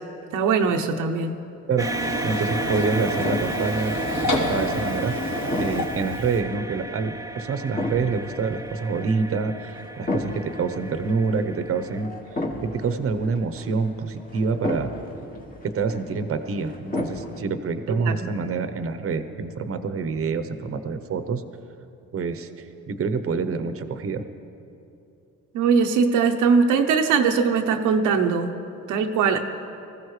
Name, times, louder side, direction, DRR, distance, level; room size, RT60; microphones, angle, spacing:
voice 1, 0.3-1.4 17.9-18.3 25.5-28.5 28.9-29.4, right 5 dB, 90° right, 4 dB, 0.9 m, -21 dB
Printer, 1.8-6.4, equal, 60° left, 3.1 m, -28 dB
sound 1, 1.8-12.0, right 2 dB, 10° right, 0.5 m, -34 dB
voice 2, 2.2-4.0 4.2-5.2 5.6-12.1 12.6-14.9 15.6-21.4 22.1-24.2, right 4 dB, 50° right, 10 dB, 0.9 m, -27 dB
sound 2, 2.6-17.4, left 1 dB, 30° left, 1.8 m, -35 dB
20.5 x 15.0 x 3.2 m, 2.7 s
cardioid pair, 90°, 30 cm